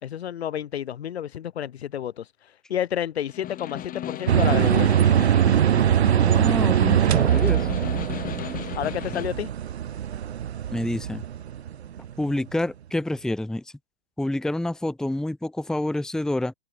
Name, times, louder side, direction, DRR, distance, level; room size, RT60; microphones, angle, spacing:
voice 1, 0.0-2.3 2.7-5.0 8.8-9.5, left 10 dB, 60° left, 1.8 m, -30 dB
Snare drum, 3.3-9.4, left 11 dB, 25° left, 7.8 m, -36 dB
sound 1, 4.3-12.3, right 9 dB, 60° right, 2.6 m, -22 dB
voice 2, 6.1-7.7 10.7-11.2 12.2-13.6 14.2-16.5, left 1 dB, ahead, 1.2 m, -28 dB
figure-of-eight pair, 110°, 36 cm